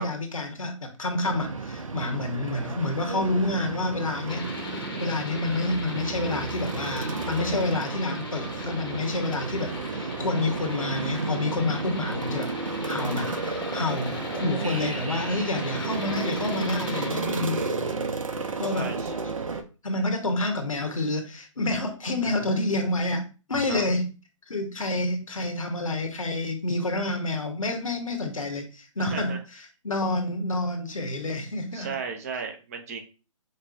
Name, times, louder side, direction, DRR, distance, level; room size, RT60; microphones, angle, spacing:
voice 1, 0.0-4.5 5.0-12.5 12.8-17.6 18.6-18.9 19.8-23.2 23.5-24.1 24.5-31.9, left 2 dB, 80° left, 0.9 m, -28 dB
sound 1, 1.2-19.6, right 3 dB, 80° right, 0.6 m, -32 dB
sound 2, 4.3-17.1, left 3 dB, 45° left, 0.7 m, -39 dB
voice 2, 17.2-17.7 18.7-19.1 22.2-22.4 23.7-23.9 29.0-29.4 31.7-33.0, right 6 dB, 30° right, 0.5 m, -35 dB
5.2 x 2.1 x 2.5 m
figure-of-eight pair, 135°, 17 cm